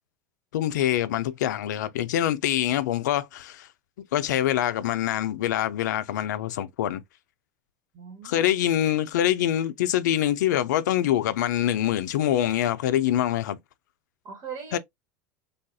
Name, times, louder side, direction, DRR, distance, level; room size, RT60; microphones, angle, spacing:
voice 1, 0.5-3.7 4.1-7.0 8.2-13.6 14.7-14.8, left 12 dB, 85° left, 0.4 m, -25 dB
voice 2, 7.9-8.5 14.2-14.8, right 6 dB, 45° right, 1.3 m, -39 dB
3.3 x 2.4 x 2.6 m
hypercardioid pair, 100°, 9 cm